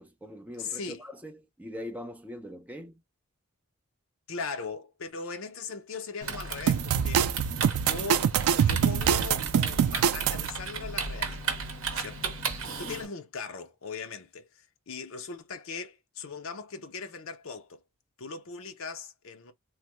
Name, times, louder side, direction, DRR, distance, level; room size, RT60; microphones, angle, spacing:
voice 1, 0.0-3.0 12.6-13.0, equal, 5° right, 0.5 m, -42 dB
voice 2, 0.6-1.0 4.3-7.3 7.8-8.3 8.6-12.5 12.8-17.8 18.2-19.5, left 4 dB, 65° left, 0.6 m, -39 dB
Typing, 6.2-13.0, right 4 dB, 65° right, 0.8 m, -35 dB
sound 1, 6.7-10.5, right 8 dB, 85° right, 0.3 m, -25 dB
3.2 x 2.1 x 2.9 m
head